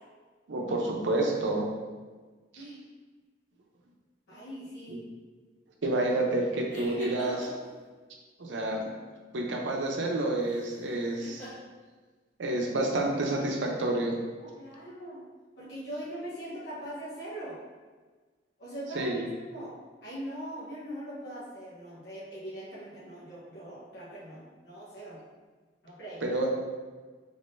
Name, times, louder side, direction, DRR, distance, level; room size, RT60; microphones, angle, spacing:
voice 1, 0.5-1.7 2.5-2.6 4.9-5.0 5.8-7.5 8.4-8.9 9.3-11.4 12.4-14.2 18.9-19.3 26.2-26.5, right 2 dB, 85° right, 0 dB, 0.6 m, -29 dB
voice 2, 4.3-5.0 14.4-15.2 15.6-17.5 18.6-19.7 20.0-25.2 25.8-26.2, right 1 dB, 65° left, -9 dB, 1.0 m, -41 dB
sound 1, 6.7-7.7 10.4-10.8 11.2-11.5, equal, 10° left, 1.0 m, -40 dB
3.6 x 3.5 x 2.5 m, 1.4 s
head